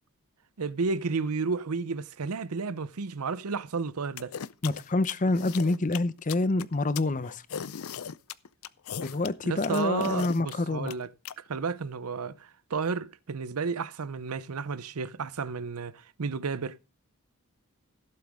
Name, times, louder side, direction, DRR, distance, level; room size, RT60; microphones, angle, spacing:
voice 1, 0.6-4.3 9.5-11.1 11.4-16.8, right 4 dB, 80° right, 0.7 m, -32 dB
sound 1, 4.2-11.3, left 7 dB, 70° left, 0.5 m, -38 dB
voice 2, 4.6-7.4 9.0-10.9, left 2 dB, 35° left, 0.6 m, -27 dB
17.0 x 7.7 x 3.6 m
head